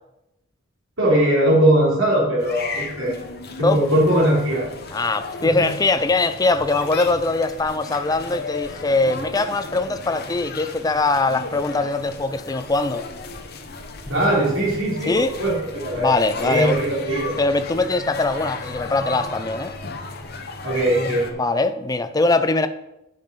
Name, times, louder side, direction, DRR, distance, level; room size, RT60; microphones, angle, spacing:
voice 1, 1.0-3.2 3.6-4.7 5.4-5.7 14.0-15.6 15.8-16.1 16.4-17.3 20.6-21.4, right 1 dB, 70° right, 3.2 m, -20 dB
sound 1, 2.4-21.3, left 3 dB, 50° left, 0.9 m, -35 dB
voice 2, 4.9-13.1 15.1-15.3 16.0-16.8 17.4-19.8 21.4-22.7, left 3 dB, 20° left, 0.5 m, -22 dB
9.5 x 5.5 x 5.2 m
head